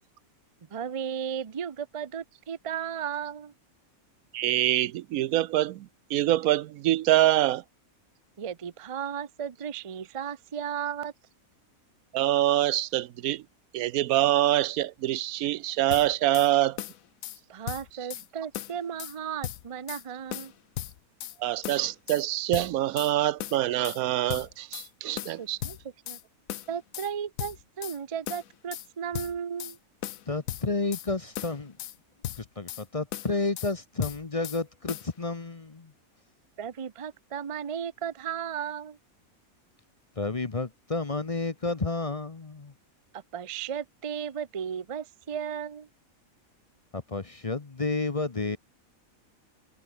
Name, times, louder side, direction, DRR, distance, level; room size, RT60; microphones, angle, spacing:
voice 1, 0.7-3.5 8.4-11.1 17.5-20.5 25.4-25.8 26.1-26.2 26.7-29.8 36.6-39.0 43.1-45.9, right 8 dB, 35° right, 0.5 m, -35 dB
voice 2, 4.3-5.9 6.1-7.6 12.1-13.4 13.7-16.8 21.4-25.6, right 14 dB, 90° right, 1.1 m, -25 dB
sound 1, 15.9-16.5 16.8-17.4 17.7-18.3 18.5-19.2 19.4-20.0 20.3-21.4 21.6-22.2 22.5-23.1 23.4-24.0 24.3-24.9 25.2-26.2 26.5-27.1 27.4-28.0 28.3-28.9 29.1-29.8 30.0-31.1 31.3-32.0 32.2-32.8 33.1-33.7 34.0-34.6 34.9-35.1, left 12 dB, 75° left, 1.1 m, -37 dB
voice 3, 30.3-31.7 32.4-35.9 40.2-42.7 46.9-48.6, left 3 dB, 30° left, 0.9 m, -31 dB
omnidirectional pair, 1.5 m